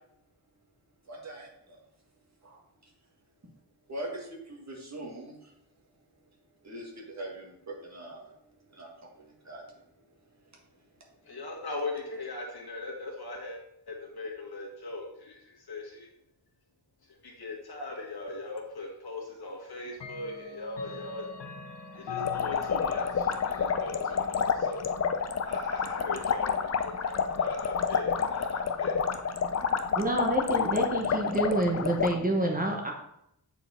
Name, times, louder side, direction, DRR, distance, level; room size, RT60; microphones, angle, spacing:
voice 1, 1.1-1.8 2.4-2.9 3.9-5.5 6.6-8.3 8.7-9.8, right 1 dB, 40° right, -1 dB, 1.9 m, -42 dB
voice 2, 11.2-13.6 13.9-16.1 17.1-21.3 21.9-24.9 25.4-29.7, left 2 dB, 65° left, -1 dB, 1.9 m, -40 dB
Clock, 18.6-18.7 19.9-26.7, left 9 dB, 85° left, 1.0 m, -42 dB
sound 1, 22.2-32.1, left 6 dB, 40° left, 0.5 m, -29 dB
voice 3, 30.0-32.9, right 1 dB, 20° right, 0 dB, 0.9 m, -28 dB
8.1 x 4.6 x 4.4 m, 0.78 s
wide cardioid pair, 150°, 41 cm